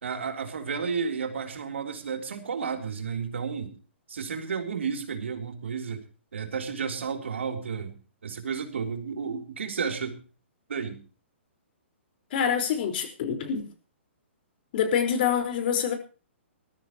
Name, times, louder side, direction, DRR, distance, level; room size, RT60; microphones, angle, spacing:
voice 1, 0.0-3.7 4.1-6.0 6.3-7.9 8.2-10.2 10.7-11.0, right 6 dB, 80° right, 5 dB, 3.6 m, -32 dB
voice 2, 12.3-13.7 14.7-15.9, left 8 dB, 50° left, 6 dB, 4.8 m, -26 dB
21.5 x 13.5 x 3.1 m, 0.35 s
hypercardioid pair, 135°, 7 cm